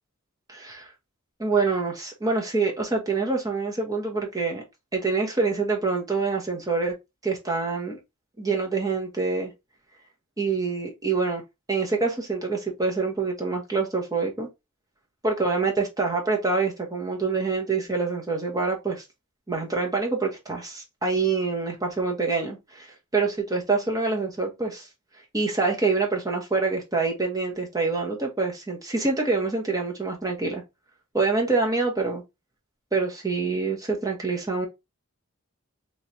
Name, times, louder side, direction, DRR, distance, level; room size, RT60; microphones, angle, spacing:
voice 1, 0.5-0.9 1.4-4.6 4.9-7.0 7.2-8.0 8.4-9.5 10.4-11.4 11.7-14.5 15.2-19.0 19.5-22.9 23.1-24.9 25.3-30.6 31.1-32.2 32.9-34.7, right 4 dB, 15° right, 1.1 m, -26 dB
3.2 x 3.1 x 2.7 m
head